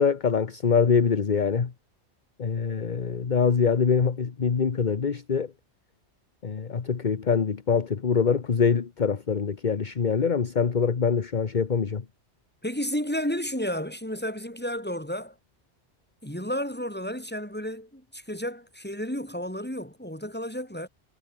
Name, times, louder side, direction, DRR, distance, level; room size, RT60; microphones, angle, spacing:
voice 1, 0.0-1.7 2.4-5.5 6.4-12.0, left 6 dB, 45° left, 1.2 m, -24 dB
voice 2, 12.6-15.3 16.2-20.9, equal, 10° left, 5.1 m, -32 dB
omnidirectional pair, 1.1 m